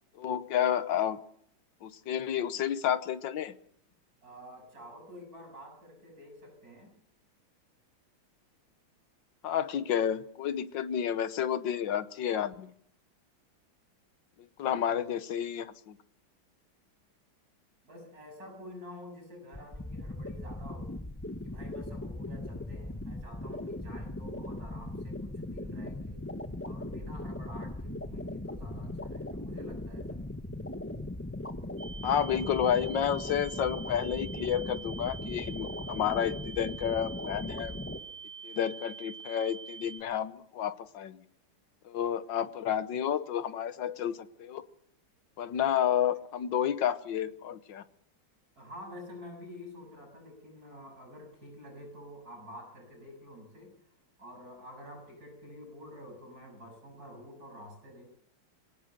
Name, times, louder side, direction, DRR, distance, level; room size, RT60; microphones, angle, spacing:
voice 1, 0.2-1.2 1.8-3.5 9.4-12.7 14.6-16.0 32.0-37.8 38.4-41.2 41.8-44.6 45.4-47.8, left 9 dB, 65° left, 13 dB, 1.7 m, -30 dB
voice 2, 4.2-7.0 17.8-20.9 21.4-26.2 26.6-30.2 48.6-53.8 54.2-58.1, left 1 dB, 40° right, 3 dB, 8.1 m, -48 dB
sound 1, 19.5-38.0, left 1 dB, 20° left, 0.3 m, -39 dB
sound 2, 31.8-40.0, right 6 dB, 80° right, 5.7 m, -45 dB
23.5 x 18.0 x 6.7 m, 0.70 s
omnidirectional pair, 2.4 m